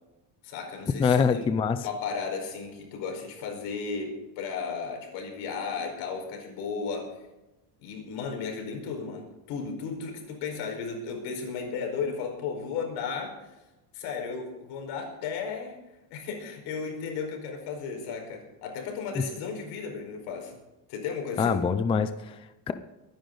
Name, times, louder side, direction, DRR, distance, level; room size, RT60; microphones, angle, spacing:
voice 1, 0.4-1.5 1.8-7.1 7.8-13.3 13.9-15.8 16.1-20.5 20.9-21.6, left 5 dB, 80° left, 2 dB, 4.9 m, -34 dB
voice 2, 1.0-1.8 21.4-22.4 22.7-22.8, left 6 dB, 15° left, 10 dB, 0.4 m, -24 dB
23.0 x 10.5 x 3.9 m, 1.0 s
cardioid pair, 165°, 42 cm